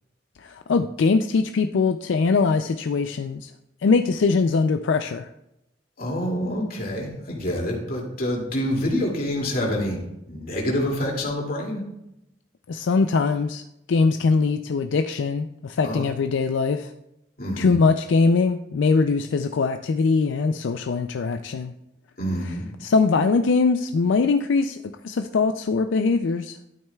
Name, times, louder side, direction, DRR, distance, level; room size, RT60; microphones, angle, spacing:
voice 1, 0.4-3.5 3.8-5.3 12.7-13.6 13.9-16.9 17.6-21.7 22.4-22.5 22.8-26.6, left 4 dB, 80° left, 8 dB, 0.4 m, -22 dB
voice 2, 6.0-10.0 10.3-11.8 15.8-16.1 17.4-17.8 22.2-22.6, equal, 50° left, -2 dB, 2.5 m, -27 dB
12.0 x 8.7 x 2.3 m, 0.85 s
head